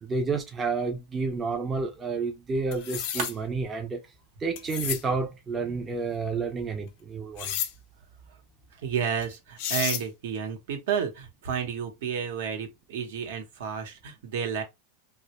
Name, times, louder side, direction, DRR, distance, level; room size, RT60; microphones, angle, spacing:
voice 1, 0.0-4.0 4.4-7.5, right 4 dB, 15° right, 0.4 m, -30 dB
sound 1, 0.8-6.7, right 5 dB, 45° right, 0.7 m, -45 dB
sound 2, 2.7-3.3 4.6-5.0 7.4-7.7 9.2-9.3 9.6-10.0, left 10 dB, 50° left, 0.4 m, -31 dB
voice 2, 8.7-14.6, right 7 dB, 75° right, 0.8 m, -31 dB
2.1 x 2.1 x 2.9 m
supercardioid pair, 160°, 0 cm